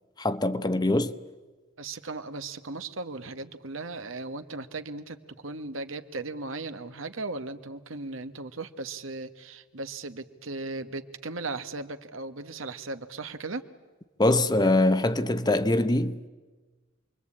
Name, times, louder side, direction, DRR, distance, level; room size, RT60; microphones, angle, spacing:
voice 1, 0.2-1.1 14.2-16.3, left 2 dB, 20° left, 0.9 m, -23 dB
voice 2, 1.8-5.2 5.4-13.6, right 3 dB, 75° right, 1.4 m, -37 dB
28.0 x 22.5 x 8.6 m
head